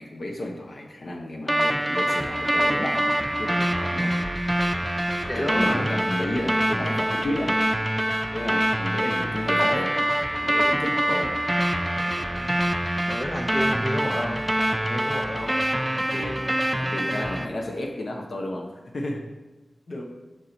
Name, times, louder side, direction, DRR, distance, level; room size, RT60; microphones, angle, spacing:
voice 1, 0.0-4.2 5.1-7.5 8.3-10.0 10.3-11.3 16.0-16.4 16.7-19.2 19.9-20.0, left 1 dB, 60° left, 1 dB, 0.8 m, -32 dB
sound 1, 1.5-17.5, right 1 dB, 15° right, 0.4 m, -25 dB
voice 2, 5.3-5.9 12.0-12.6 13.1-14.4 14.7-15.5, equal, 25° left, 2 dB, 0.8 m, -31 dB
6.4 x 4.3 x 3.9 m, 1.1 s
wide cardioid pair, 70°, 0 cm